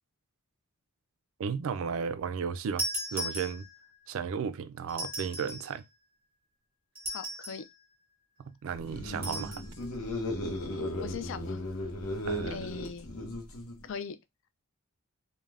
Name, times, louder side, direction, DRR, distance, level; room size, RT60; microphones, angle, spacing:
voice 1, 1.4-2.9 3.1-3.6 4.1-5.8 8.5-9.6 12.3-12.7, right 6 dB, 65° right, 0.3 m, -34 dB
sound 1, 2.8-3.9 4.9-5.7 7.0-7.7 9.2-9.7, right 1 dB, 10° right, 1.0 m, -37 dB
voice 2, 7.1-7.6 11.0-11.6 12.5-13.1 13.9-14.2, left 6 dB, 60° left, 0.3 m, -39 dB
sound 2, 8.8-13.9, left 1 dB, 80° left, 0.7 m, -36 dB
2.4 x 2.1 x 3.2 m
head